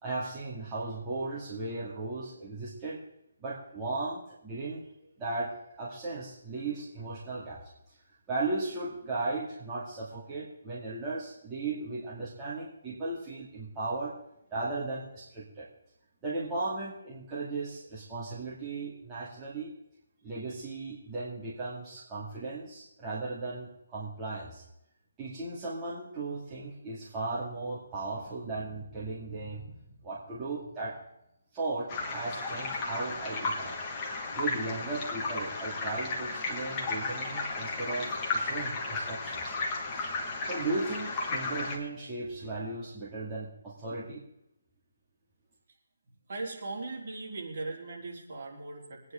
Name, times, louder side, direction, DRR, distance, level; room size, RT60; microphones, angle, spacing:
voice 1, 0.0-3.0 3.4-4.8 5.2-5.5 5.8-7.6 8.3-14.1 14.5-15.7 16.2-19.7 20.2-24.6 25.2-29.7 30.0-31.0 31.5-33.8 34.3-39.5 39.9-40.1 40.4-44.2, right 3 dB, 15° right, -8 dB, 2.3 m, -36 dB
sound 1, 31.9-41.8, left 3 dB, 20° left, 1.8 m, -34 dB
voice 2, 46.3-49.1, right 3 dB, 45° right, -3 dB, 3.9 m, -39 dB
23.0 x 9.6 x 3.8 m, 0.82 s
hypercardioid pair, 165°, 0 cm